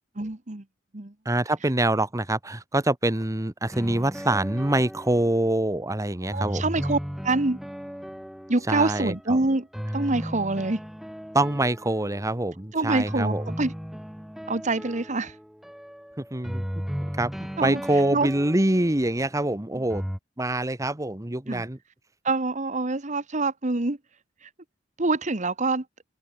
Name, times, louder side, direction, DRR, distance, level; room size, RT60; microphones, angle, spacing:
voice 1, 0.2-0.6 0.9-1.1 6.2-7.6 8.5-9.7 9.9-10.8 12.7-13.7 14.5-15.4 17.6-17.8 18.1-18.3 19.7-19.8 21.5-21.6 22.2-24.0 24.4-24.5 25.0-25.8, right 2 dB, 40° right, 1.4 m, -26 dB
voice 2, 1.2-6.6 8.7-9.1 11.3-13.4 16.3-16.6 17.2-17.3 17.6-20.0 20.4-21.8, right 1 dB, 15° right, 1.3 m, -25 dB
sound 1, 3.7-5.7 6.3-9.2 9.7-12.4 13.1-19.4 19.9-20.2, equal, ahead, 0.9 m, -36 dB
head